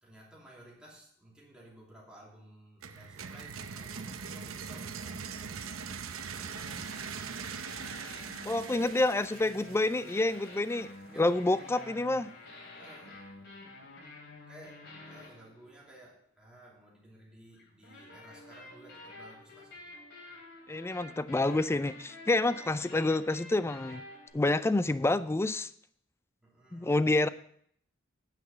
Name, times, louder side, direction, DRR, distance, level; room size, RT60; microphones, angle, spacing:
voice 1, 0.0-5.9 6.2-6.8 11.1-12.1 12.7-13.2 14.5-19.9 26.4-27.0, right 1 dB, 5° right, -5 dB, 2.9 m, -55 dB
Borg Rise, 2.8-10.6, right 6 dB, 90° right, 0.8 m, -41 dB
sound 1, 6.5-16.0 17.5-24.3, left 2 dB, 60° left, 3.4 m, -50 dB
voice 2, 8.4-10.9 11.2-12.2 20.7-24.0 24.3-25.7 26.7-27.3, left 2 dB, 10° left, 14 dB, 0.3 m, -28 dB
9.4 x 5.8 x 7.0 m, 0.65 s
head